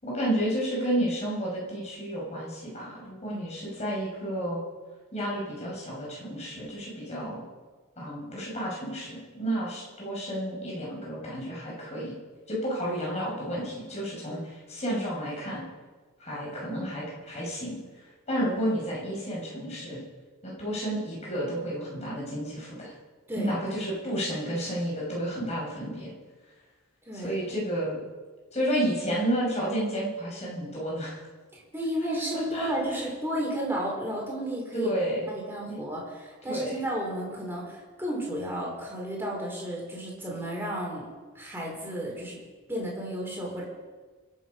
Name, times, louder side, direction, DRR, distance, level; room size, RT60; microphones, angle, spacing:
voice 1, 0.0-4.6 5.1-7.5 8.0-12.2 12.5-15.6 16.2-17.8 18.3-20.0 20.4-22.9 23.3-26.1 27.1-28.0 28.5-31.2 32.5-33.0 34.7-35.3 35.7-35.8 36.4-36.8, equal, 30° left, -4 dB, 6.0 m, -31 dB
voice 2, 27.0-27.4 31.5-34.9 35.3-41.1 41.3-42.4 42.7-43.6, right 1 dB, 10° right, -3 dB, 4.6 m, -33 dB
24.5 x 8.9 x 5.5 m, 1.4 s
head